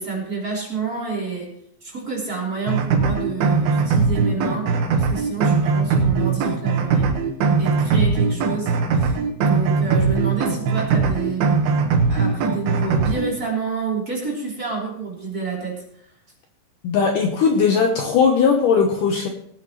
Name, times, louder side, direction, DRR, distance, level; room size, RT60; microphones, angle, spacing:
voice 1, 0.0-1.5 1.8-4.7 5.0-7.1 7.6-9.2 9.5-11.5 12.1-16.1, right 4 dB, 25° right, -2 dB, 3.8 m, -28 dB
sound 1, 2.7-13.3, right 4 dB, 75° right, 3.2 m, -20 dB
voice 2, 16.8-19.3, left 5 dB, 70° left, 3 dB, 2.3 m, -18 dB
21.0 x 9.1 x 3.1 m, 0.70 s
omnidirectional pair, 4.6 m